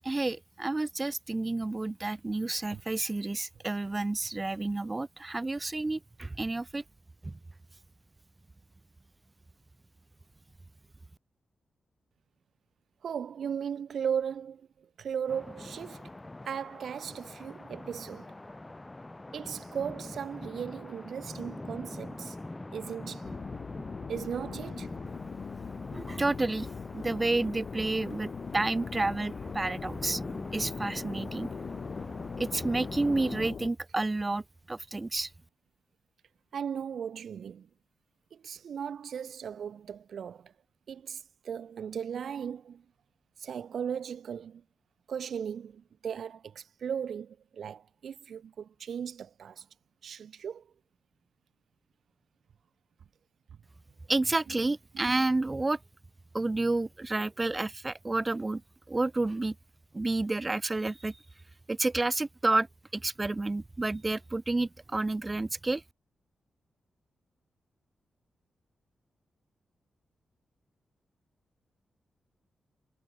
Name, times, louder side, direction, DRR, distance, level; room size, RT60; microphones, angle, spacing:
voice 1, 0.0-6.8 7.2-7.3 25.9-26.7 26.9-30.2 30.5-31.5 32.4-34.4 34.7-35.3 54.1-55.8 56.3-58.6 58.9-59.5 59.9-61.2 61.7-62.7 62.9-65.8, right 2 dB, 20° right, 1.3 m, -30 dB
voice 2, 13.0-14.6 15.0-16.0 16.5-18.3 19.3-22.4 22.7-23.2 24.1-24.9 36.5-37.7 38.4-40.5 40.9-42.8 43.4-44.6 45.1-49.6 50.0-50.6 54.9-55.2, right 8 dB, 65° right, 0.6 m, -37 dB
sound 1, 15.3-33.5, left 2 dB, 15° left, 2.0 m, -44 dB
sound 2, 23.2-33.7, left 6 dB, 45° left, 3.3 m, -41 dB
wide cardioid pair, 145°, 0 cm